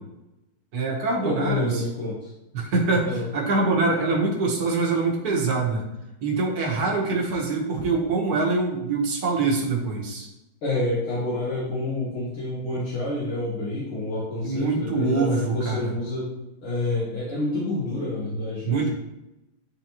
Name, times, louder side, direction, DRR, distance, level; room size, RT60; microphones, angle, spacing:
voice 1, 0.7-1.8 2.5-5.9 6.2-10.3 14.4-16.0 18.6-18.9, right 3 dB, 50° right, -2 dB, 1.6 m, -24 dB
voice 2, 1.2-2.2 3.0-3.2 10.6-16.3 16.6-18.9, left 2 dB, 80° left, -9 dB, 2.5 m, -28 dB
9.8 x 3.7 x 3.0 m, 0.93 s
omnidirectional pair, 2.3 m